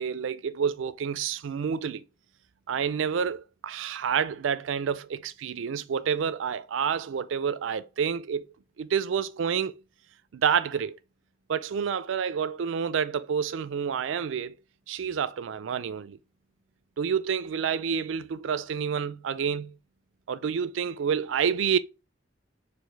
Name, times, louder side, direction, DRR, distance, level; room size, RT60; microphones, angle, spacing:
voice 1, 0.0-2.0 2.7-8.4 8.8-9.8 10.3-11.0 11.5-14.5 14.9-16.2 17.0-19.7 20.3-21.8, right 7 dB, 80° right, 0.4 m, -28 dB
4.6 x 2.5 x 4.4 m
head